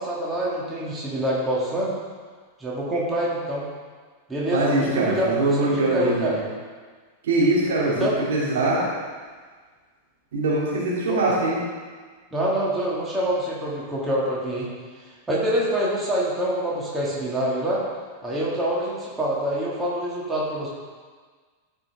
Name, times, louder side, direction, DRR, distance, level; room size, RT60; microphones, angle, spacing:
voice 1, 0.0-1.9 2.6-3.6 4.3-6.4 8.0-8.1 11.1-11.2 12.3-14.7 15.3-17.8 18.2-20.7, right 1 dB, 10° right, -6 dB, 2.3 m, -26 dB
voice 2, 4.5-6.4 7.2-8.9 10.3-11.6, right 2 dB, 60° right, -6 dB, 3.0 m, -22 dB
14.5 x 5.7 x 3.7 m, 1.5 s
figure-of-eight pair, 90°, 0 cm